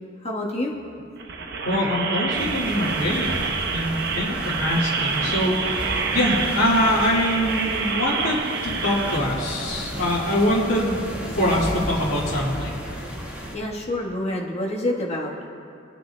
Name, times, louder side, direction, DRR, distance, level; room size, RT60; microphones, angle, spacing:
voice 1, 0.2-0.8 13.5-15.5, left 1 dB, 35° left, -2 dB, 1.3 m, -27 dB
sound 1, 1.2-9.2, right 4 dB, 60° right, 0.8 m, -27 dB
voice 2, 1.6-3.3 3.7-8.4 8.8-11.0 11.3-13.0, left 1 dB, 75° left, -9 dB, 1.9 m, -24 dB
sound 2, 2.3-13.6, equal, 5° right, 1.7 m, -34 dB
24.5 x 9.0 x 2.2 m, 2.5 s
head